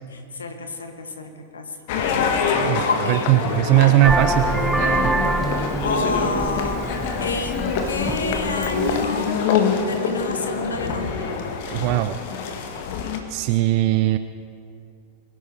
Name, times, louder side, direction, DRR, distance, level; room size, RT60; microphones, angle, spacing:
voice 1, 0.1-1.8 2.8-3.3 5.8-6.8 7.2-9.5 9.9-11.4, left 3 dB, 70° left, 5 dB, 1.4 m, -28 dB
sound 1, 1.9-13.2, left 6 dB, 50° left, 1.5 m, -25 dB
voice 2, 2.5-5.2 11.7-12.2 13.3-14.2, right 15 dB, 45° right, 11 dB, 0.5 m, -20 dB
Vehicle horn car horn honking, 4.0-9.1, right 2 dB, 5° right, 0.7 m, -25 dB
22.5 x 11.0 x 4.4 m, 2.5 s
figure-of-eight pair, 90°, 0 cm